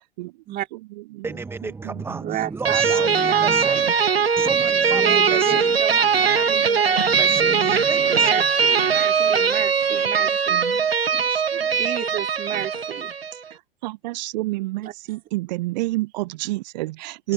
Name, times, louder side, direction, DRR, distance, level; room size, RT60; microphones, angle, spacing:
voice 1, 0.7-1.3 1.6-2.3 3.4-3.6 3.8-4.3 5.3-5.6 6.1-7.8 8.4-8.5 9.2-9.5 10.2-11.8 12.1-12.7 13.5-17.3, right 20 dB, 45° right, 1.1 m, -32 dB
voice 2, 1.2-3.9 4.4-5.8 7.1-8.3 17.2-17.3, right 4 dB, 10° right, 1.0 m, -32 dB
voice 3, 2.2-3.8 5.0-7.3 8.1-10.6 11.8-13.2 14.8-14.9, right 13 dB, 30° right, 3.6 m, -32 dB
sound 1, 2.7-13.4, right 6 dB, 80° right, 1.2 m, -20 dB
figure-of-eight pair, 95°, 30 cm